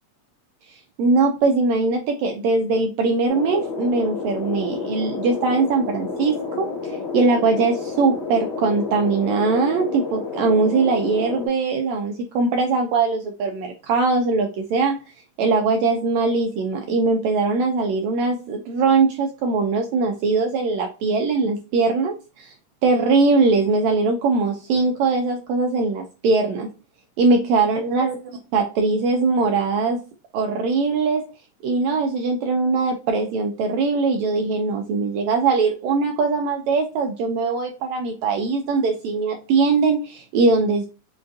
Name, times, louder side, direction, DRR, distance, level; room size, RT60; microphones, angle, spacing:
voice 1, 0.7-15.0 15.4-22.5 22.8-26.7 27.2-28.1 28.5-30.0 30.3-31.3 31.6-40.9, right 4 dB, 85° right, 3 dB, 1.6 m, -21 dB
sound 1, 3.3-11.5, left 5 dB, 50° left, 1.3 m, -30 dB
5.2 x 2.4 x 2.5 m, 0.32 s
omnidirectional pair, 3.6 m